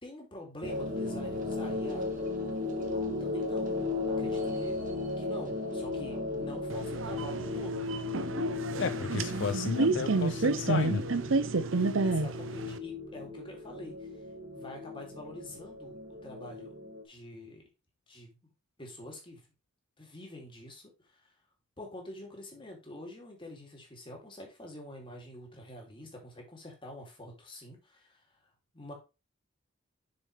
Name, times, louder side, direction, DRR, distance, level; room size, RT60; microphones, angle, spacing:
voice 1, 0.0-2.1 3.2-3.9 4.2-4.8 5.2-7.9 12.0-14.1 14.5-16.0 16.2-16.7 17.0-17.6 18.1-18.4 18.8-19.5 20.0-21.3 21.8-28.2 28.7-28.9, left 1 dB, 25° left, 0 dB, 2.8 m, -46 dB
sound 1, 0.6-17.0, left 3 dB, 45° right, 1.9 m, -36 dB
sound 2, 6.7-12.8, right 3 dB, 75° right, 0.7 m, -30 dB
voice 2, 8.8-11.0, left 5 dB, 65° left, 11 dB, 0.5 m, -33 dB
6.9 x 6.6 x 3.4 m, 0.28 s
head